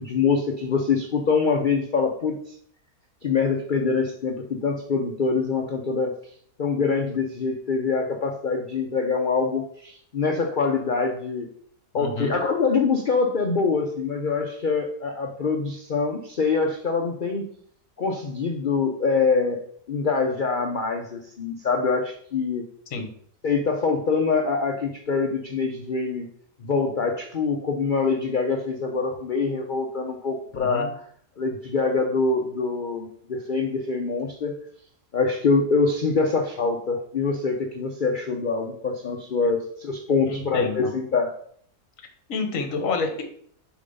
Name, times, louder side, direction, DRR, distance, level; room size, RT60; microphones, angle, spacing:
voice 1, 0.0-2.5 3.2-6.1 6.6-11.5 11.9-17.4 18.0-19.6 19.9-22.6 23.4-26.3 26.6-30.9 31.4-34.5 35.1-41.3, left 4 dB, 85° left, 3 dB, 0.4 m, -24 dB
voice 2, 11.9-12.4 22.9-23.1 30.5-30.9 40.3-40.9 42.3-43.2, left 4 dB, 55° left, 6 dB, 1.3 m, -28 dB
6.6 x 3.1 x 5.3 m, 0.62 s
omnidirectional pair, 1.7 m